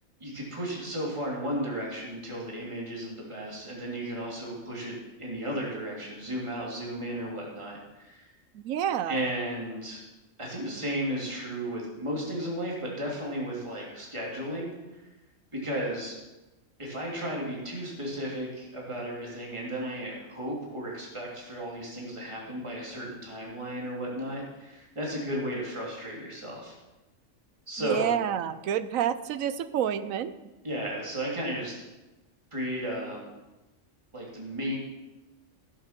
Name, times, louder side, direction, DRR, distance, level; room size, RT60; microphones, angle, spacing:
voice 1, 0.2-4.9 5.2-8.3 9.1-10.0 10.4-15.0 15.5-16.2 16.8-26.7 27.7-28.1 30.6-31.8 32.5-33.3 34.1-34.8, right 1 dB, 20° right, -3 dB, 2.8 m, -34 dB
voice 2, 8.5-9.2 27.8-30.3, right 9 dB, 80° right, 14 dB, 1.1 m, -28 dB
15.0 x 7.6 x 5.9 m, 1.1 s
omnidirectional pair, 1.4 m